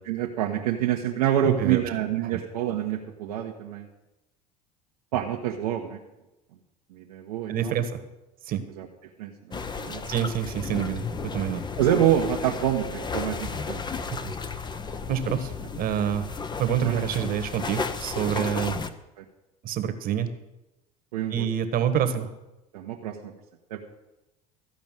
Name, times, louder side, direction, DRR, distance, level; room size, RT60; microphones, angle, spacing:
voice 1, 0.0-3.9 5.1-6.0 6.9-7.7 8.8-8.9 9.2-10.1 11.8-14.0 16.8-17.0 18.3-18.4 19.2-19.3 21.1-21.5 22.7-23.3 23.7-23.8, right 10 dB, 80° right, 0 dB, 1.3 m, -27 dB
voice 2, 1.4-1.8 2.2-2.4 7.5-8.0 8.5-8.6 10.1-11.6 14.2-14.3 15.1-16.3 16.6-18.8 19.6-20.3 21.3-22.3, right 9 dB, 50° right, 10 dB, 1.5 m, -27 dB
sound 1, 9.5-18.9, left 5 dB, 25° left, 0.9 m, -34 dB
14.5 x 5.3 x 9.0 m, 0.97 s
hypercardioid pair, 85°, 19 cm